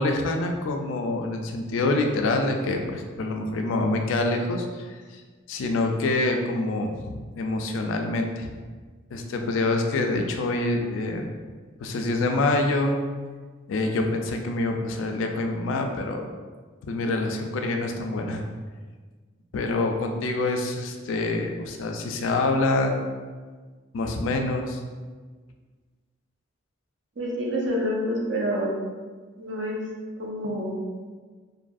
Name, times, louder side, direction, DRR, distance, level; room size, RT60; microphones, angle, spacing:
voice 1, 0.0-5.2 5.5-8.5 9.1-11.3 11.8-12.9 13.7-16.2 16.8-18.4 19.5-23.0 23.9-24.8, left 2 dB, 80° left, 4 dB, 0.3 m, -26 dB
voice 2, 27.2-28.8 29.4-29.8 30.2-30.8, equal, 70° right, -3 dB, 0.6 m, -27 dB
2.6 x 2.5 x 2.3 m, 1.4 s
head